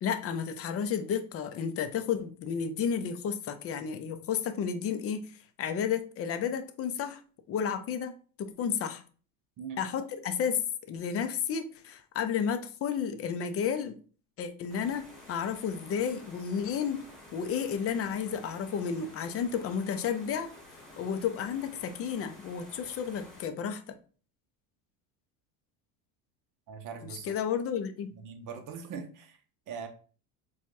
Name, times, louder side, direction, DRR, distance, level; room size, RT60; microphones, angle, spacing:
voice 1, 0.0-5.3 5.6-7.2 7.5-9.0 9.8-14.0 14.4-17.1 17.3-20.5 21.0-23.9 27.0-28.1, left 7 dB, 35° left, 9 dB, 0.4 m, -32 dB
sound 1, 14.7-23.5, left 1 dB, ahead, 1.4 m, -51 dB
voice 2, 26.7-27.3 28.2-29.4 29.7-29.9, right 6 dB, 45° right, 6 dB, 0.8 m, -41 dB
4.4 x 2.3 x 2.6 m, 0.39 s
supercardioid pair, 115°, 43 cm